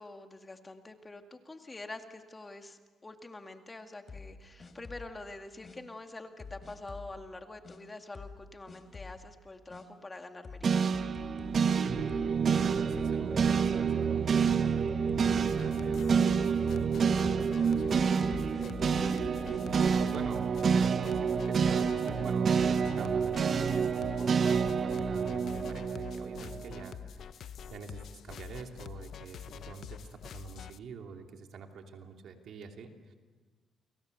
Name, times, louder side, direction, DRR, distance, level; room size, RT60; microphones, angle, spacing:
voice 1, 0.0-10.9, left 2 dB, 20° left, 5 dB, 2.1 m, -46 dB
sound 1, 4.1-5.2 5.6-5.8 6.4-7.1 7.6-7.8 8.1-8.4 8.7-9.2 9.7-9.8 10.4-12.4 12.6-13.3 13.6-13.8 14.4-15.7 16.0-16.3 16.6-17.1 17.6-17.7 18.3-19.6, left 4 dB, 40° left, 3.8 m, -47 dB
sound 2, 10.6-26.9, right 6 dB, 50° right, 1.2 m, -28 dB
voice 2, 11.8-18.4 18.8-20.4 20.8-33.1, right 5 dB, 70° right, 3 dB, 2.9 m, -46 dB
sound 3, 15.3-30.8, left 8 dB, 65° left, 0.8 m, -45 dB
29.5 x 23.0 x 6.8 m, 1.4 s
cardioid pair, 90°, 0 cm